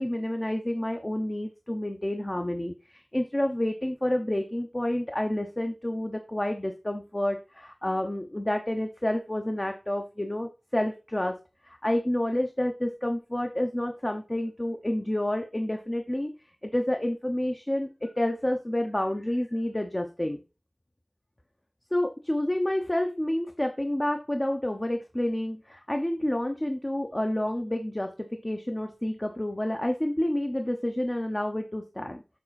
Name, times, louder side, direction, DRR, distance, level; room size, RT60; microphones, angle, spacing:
voice 1, 0.0-11.3 11.6-16.3 16.6-20.4 21.9-32.2, left 1 dB, 30° left, 4 dB, 0.8 m, -29 dB
7.3 x 4.3 x 4.1 m, 0.30 s
wide cardioid pair, 55°, 0 cm